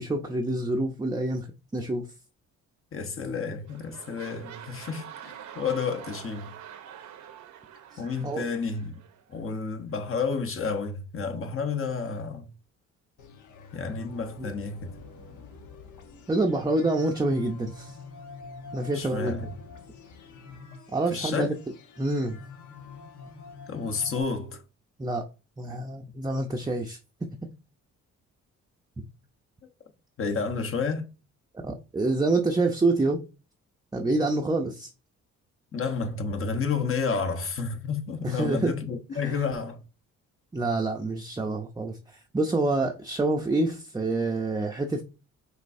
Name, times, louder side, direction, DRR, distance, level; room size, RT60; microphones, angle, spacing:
voice 1, 0.0-1.5 1.7-2.1 8.2-8.4 14.4-14.5 16.3-18.0 18.7-19.4 20.9-21.5 22.0-22.4 25.0-25.2 25.6-27.0 31.6-33.2 33.9-34.9 38.2-38.7 39.2-39.4 40.5-45.0, right 2 dB, 15° right, 0.6 m, -27 dB
voice 2, 2.9-6.5 8.0-9.0 9.3-12.5 13.7-14.9 18.9-19.5 21.1-21.5 23.7-24.6 30.2-31.0 35.7-39.8, left 5 dB, 45° left, 1.0 m, -30 dB
sound 1, 3.1-3.4 3.6-9.5 10.1-10.2, right 9 dB, 75° right, 0.9 m, -46 dB
sound 2, 13.2-24.2, left 4 dB, 75° left, 1.1 m, -46 dB
5.2 x 3.3 x 2.7 m
cardioid pair, 90°, 30 cm